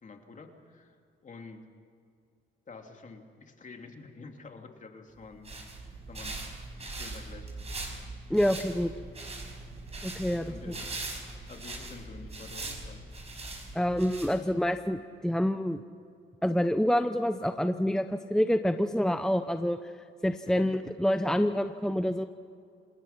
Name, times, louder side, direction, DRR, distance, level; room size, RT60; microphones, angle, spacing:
voice 1, 0.0-1.0 1.2-1.6 2.7-5.5 6.1-6.4 6.8-7.5 10.5-10.9 11.5-13.0 20.4-20.7, left 4 dB, 40° left, 3 dB, 3.0 m, -48 dB
sound 1, 5.2-14.7, right 2 dB, 30° right, 5.3 m, -41 dB
voice 2, 8.3-8.9 10.0-10.5 13.7-15.0 15.2-15.8 16.4-19.9 20.2-22.3, equal, 5° left, 9 dB, 0.7 m, -27 dB
28.5 x 19.5 x 5.9 m, 2.4 s
cardioid pair, 90°, 20 cm